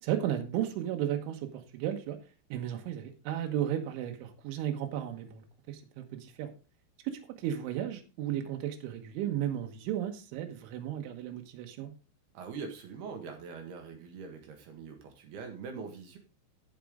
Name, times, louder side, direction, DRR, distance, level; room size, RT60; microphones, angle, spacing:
voice 1, 0.0-2.2 2.5-6.5 7.0-11.9, right 11 dB, 85° right, 5 dB, 3.7 m, -34 dB
voice 2, 12.3-16.2, right 5 dB, 65° right, 4 dB, 3.2 m, -43 dB
15.5 x 5.3 x 3.6 m, 0.32 s
omnidirectional pair, 5.4 m